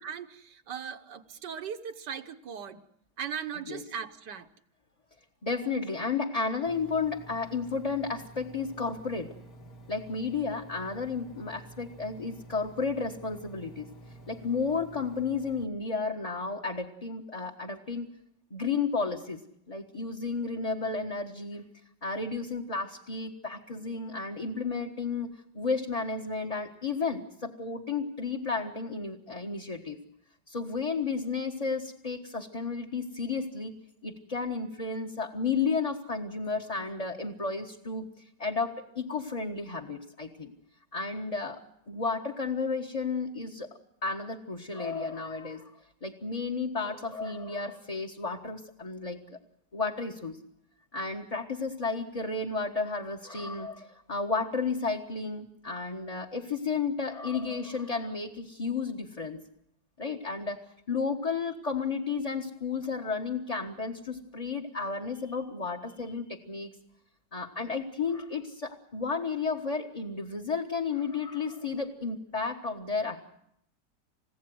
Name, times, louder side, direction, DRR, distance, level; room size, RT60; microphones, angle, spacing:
voice 1, 0.0-2.8 3.2-4.5, right 7 dB, 75° right, 8 dB, 1.7 m, -38 dB
voice 2, 5.4-9.3 9.9-13.9 14.3-18.1 18.5-19.4 19.7-21.6 22.0-25.3 25.5-30.0 30.5-33.7 34.0-40.5 40.9-41.6 41.9-43.7 44.0-45.7 46.0-49.4 49.7-50.4 50.9-59.4 60.0-60.6 60.9-66.7 67.3-73.2, left 4 dB, 20° left, 1 dB, 1.4 m, -32 dB
Engine, 6.7-15.6, right 2 dB, 55° left, 2.5 m, -50 dB
29.5 x 16.0 x 7.9 m, 0.76 s
omnidirectional pair, 1.9 m